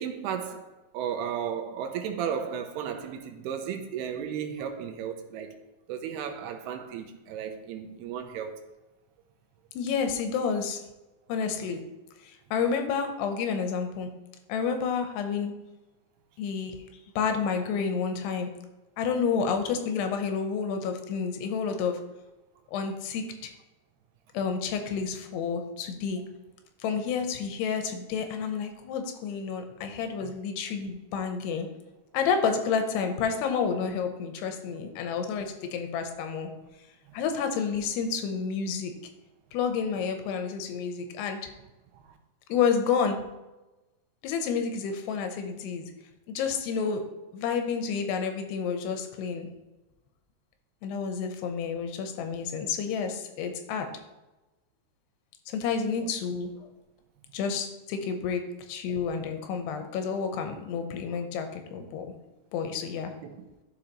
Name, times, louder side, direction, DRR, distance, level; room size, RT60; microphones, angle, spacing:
voice 1, 0.0-5.6 5.9-8.6 30.2-30.3 37.1-37.2 41.9-42.2 63.2-63.5, right 8 dB, 85° right, 2.6 m, -34 dB
voice 2, 9.7-10.8 11.3-11.8 12.2-14.1 14.5-15.5 16.4-16.8 17.2-18.5 19.0-22.0 22.7-23.5 24.3-26.2 26.8-31.7 32.1-36.5 37.1-38.9 39.5-41.4 42.5-43.2 44.2-45.9 46.3-47.0 47.3-49.5 50.8-53.9 55.5-56.7 57.3-62.1 62.5-63.1, left 6 dB, 90° left, 2.9 m, -30 dB
11.5 x 5.0 x 3.0 m
omnidirectional pair, 4.7 m